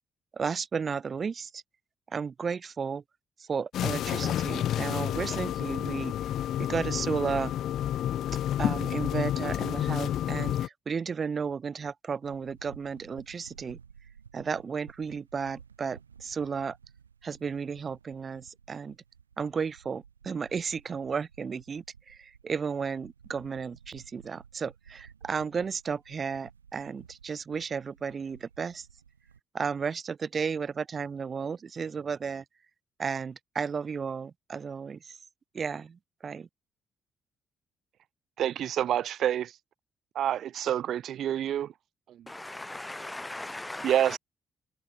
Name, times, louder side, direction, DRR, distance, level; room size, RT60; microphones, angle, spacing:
voice 1, 0.3-1.6 2.1-3.0 3.4-6.1 6.6-7.5 8.6-13.8 14.3-16.8 17.2-19.0 19.4-28.9 29.5-32.4 33.0-35.2 35.5-36.5, right 6 dB, 45° right, 2.0 m, -33 dB
sound 1, 3.7-10.7, left 11 dB, 60° left, 0.3 m, -30 dB
sound 2, 12.2-29.4, right 7 dB, 90° right, 6.2 m, -55 dB
voice 2, 38.4-39.6 40.1-41.7 43.8-44.2, right 10 dB, 60° right, 0.7 m, -27 dB
voice 3, 42.3-44.2, left 2 dB, 15° left, 0.7 m, -38 dB
figure-of-eight pair, 40°, 0 cm